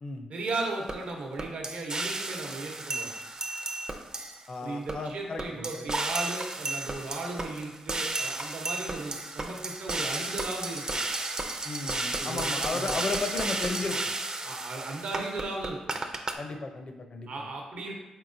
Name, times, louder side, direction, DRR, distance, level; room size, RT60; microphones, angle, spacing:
voice 1, 0.3-3.1 4.6-11.0 11.8-13.0 14.4-16.0 17.3-18.0, right 2 dB, 70° right, 0 dB, 0.8 m, -36 dB
sound 1, 0.9-1.0 1.4-4.5 4.9-5.0 5.4-16.3, right 2 dB, 35° right, 0.5 m, -33 dB
voice 2, 4.5-5.9 11.6-14.0 16.4-17.5, left 3 dB, 50° left, 5 dB, 0.6 m, -34 dB
4.6 x 3.7 x 2.6 m, 1.1 s
supercardioid pair, 55°, 2 cm